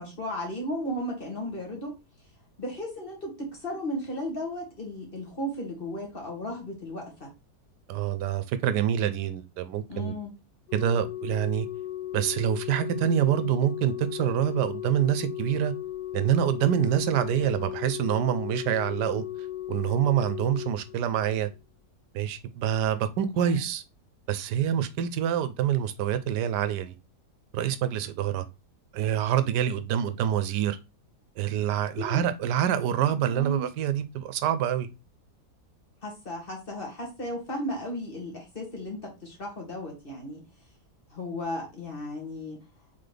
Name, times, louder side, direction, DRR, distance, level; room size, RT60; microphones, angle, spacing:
voice 1, 0.0-1.9 2.6-7.3 9.9-10.3 23.4-23.6 32.0-32.2 33.3-33.7 36.0-40.4 41.1-42.6, left 1 dB, 35° left, 1.7 m, -35 dB
voice 2, 7.9-10.1 10.7-11.7 12.1-15.7 16.1-19.2 19.7-21.5 22.1-23.8 24.3-26.9 27.5-28.4 28.9-30.8 31.4-34.9, right 10 dB, 85° right, 1.2 m, -26 dB
Organ, 10.7-21.6 22.7-22.9, left 13 dB, 90° left, 1.2 m, -36 dB
4.1 x 3.9 x 3.3 m
omnidirectional pair, 1.8 m